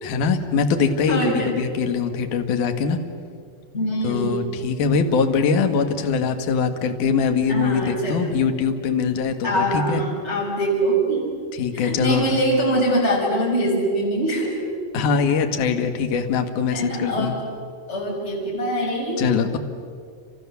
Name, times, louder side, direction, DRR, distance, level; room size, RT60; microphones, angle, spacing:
voice 1, 0.0-3.0 4.0-10.0 11.5-12.3 14.9-17.3 19.2-19.6, left 5 dB, 60° left, 5 dB, 2.8 m, -22 dB
voice 2, 1.1-1.5 3.7-4.4 7.5-8.3 9.4-11.3 11.7-14.6 16.7-17.4 17.9-19.2, right 1 dB, 15° left, -1 dB, 5.6 m, -23 dB
30.0 x 27.5 x 7.1 m, 2.2 s
omnidirectional pair, 4.7 m